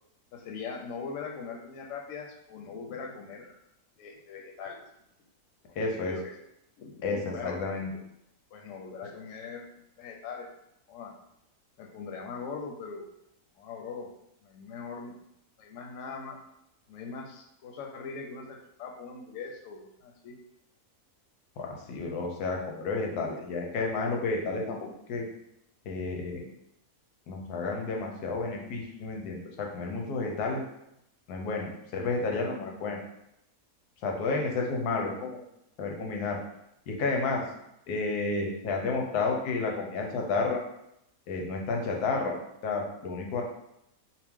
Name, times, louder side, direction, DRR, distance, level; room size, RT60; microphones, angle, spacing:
voice 1, 0.3-3.5 4.0-4.9 5.7-6.3 6.8-7.6 8.5-10.5 10.9-11.1 11.8-13.1 13.6-14.1 14.4-15.2 15.6-16.4 16.9-20.4, left 5 dB, 65° left, 2 dB, 0.9 m, -41 dB
voice 2, 5.8-6.1 7.0-7.2 7.4-7.9 21.6-24.8 25.1-25.3 25.9-26.4 27.3-30.6 31.3-33.0 34.0-35.4 35.8-36.4 36.9-37.4 37.9-40.6 41.3-42.4 42.6-43.4, left 3 dB, 90° left, 1 dB, 1.3 m, -31 dB
4.5 x 2.1 x 3.6 m, 0.81 s
omnidirectional pair, 1.6 m